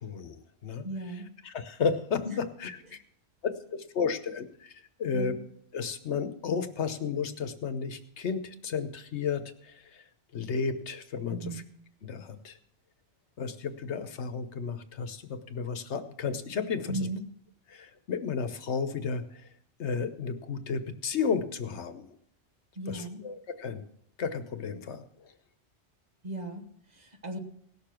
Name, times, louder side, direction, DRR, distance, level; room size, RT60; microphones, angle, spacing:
voice 1, 0.0-0.8 1.4-3.0 3.4-4.7 5.0-5.3 5.7-10.0 10.3-11.6 12.0-12.6 13.4-16.9 17.7-19.5 19.8-22.1 22.9-23.8 24.2-25.0, left 5 dB, 75° left, 10 dB, 1.2 m, -33 dB
voice 2, 0.8-1.3 2.2-2.4 5.1-5.4 11.3-11.6 16.9-17.2 22.8-23.2 26.2-27.4, right 1 dB, 40° right, 4 dB, 1.4 m, -36 dB
17.5 x 6.8 x 6.0 m, 0.70 s
omnidirectional pair, 1.2 m